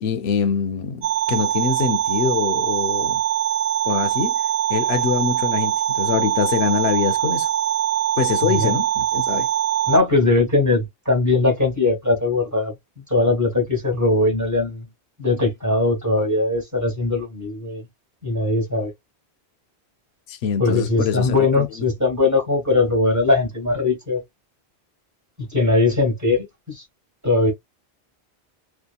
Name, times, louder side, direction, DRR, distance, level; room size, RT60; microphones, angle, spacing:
voice 1, 0.0-3.2 3.9-4.4 4.7-7.5 8.2-9.5 20.3-21.7, left 7 dB, 75° left, 0.8 m, -24 dB
sound 1, 1.0-10.0, right 11 dB, 70° right, 0.7 m, -22 dB
voice 2, 9.9-12.7 13.1-14.8 15.2-17.8 18.2-18.9 20.6-24.2 25.4-26.8 27.2-27.5, left 2 dB, 15° right, 1.2 m, -20 dB
2.7 x 2.3 x 2.3 m
omnidirectional pair, 1.1 m